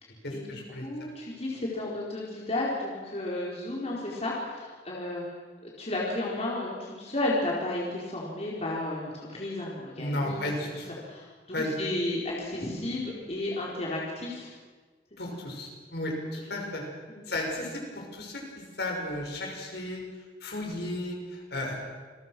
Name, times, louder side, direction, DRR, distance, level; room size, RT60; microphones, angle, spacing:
voice 1, 0.2-0.9 10.0-10.9 11.5-11.7 15.2-16.8 17.3-20.0 20.4-21.8, left 1 dB, 65° left, 1 dB, 6.3 m, -34 dB
voice 2, 0.8-5.2 5.6-10.4 11.0-14.5 15.3-15.4 17.1-17.2, left 2 dB, 35° left, -4 dB, 4.5 m, -33 dB
28.5 x 22.0 x 6.2 m, 1.4 s
head